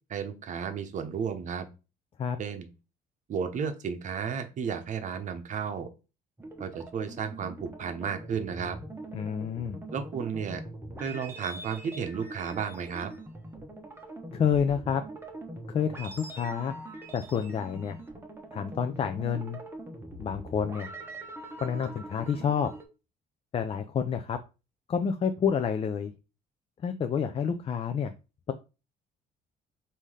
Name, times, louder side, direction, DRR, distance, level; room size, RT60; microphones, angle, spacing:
voice 1, 0.1-1.6 2.4-2.7 3.3-5.9 6.6-8.8 9.9-10.6 11.0-13.1, right 6 dB, 45° right, 8 dB, 0.8 m, -33 dB
sound 1, 6.4-22.8, right 2 dB, 15° right, 1.0 m, -43 dB
voice 2, 9.1-9.8 14.3-15.0 15.7-16.8 17.1-18.0 18.5-19.6 20.2-20.9 21.6-22.7 23.5-24.4 24.9-26.1 26.8-28.1, left 7 dB, 35° left, 9 dB, 0.5 m, -29 dB
3.7 x 2.8 x 4.8 m, 0.30 s
cardioid pair, 110°, 17 cm